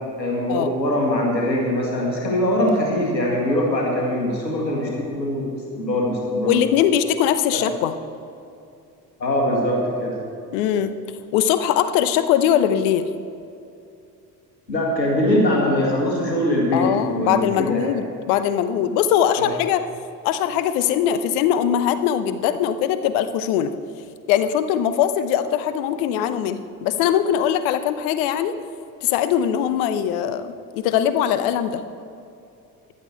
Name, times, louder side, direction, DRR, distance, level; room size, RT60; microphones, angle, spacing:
voice 1, 0.2-5.5 5.8-6.6 7.5-7.6 9.2-10.2 14.7-17.9 19.3-19.5, left 1 dB, 85° left, -2 dB, 2.1 m, -22 dB
voice 2, 6.4-7.9 10.5-10.9 11.3-13.1 16.7-19.8 20.2-23.7 24.3-28.5 29.0-31.8, left 9 dB, 55° left, 12 dB, 0.9 m, -21 dB
15.0 x 11.5 x 4.4 m, 2.6 s
figure-of-eight pair, 55°, 50 cm